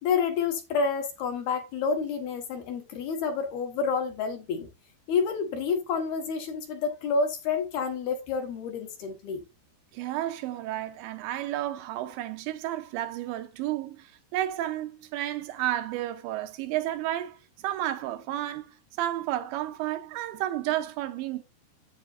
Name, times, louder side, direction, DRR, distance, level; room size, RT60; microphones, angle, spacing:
voice 1, 0.0-4.7 5.1-9.4, left 5 dB, 65° left, 3.0 m, -29 dB
voice 2, 9.9-21.4, right 13 dB, 80° right, 3.0 m, -32 dB
10.5 x 8.6 x 2.6 m
omnidirectional pair, 5.4 m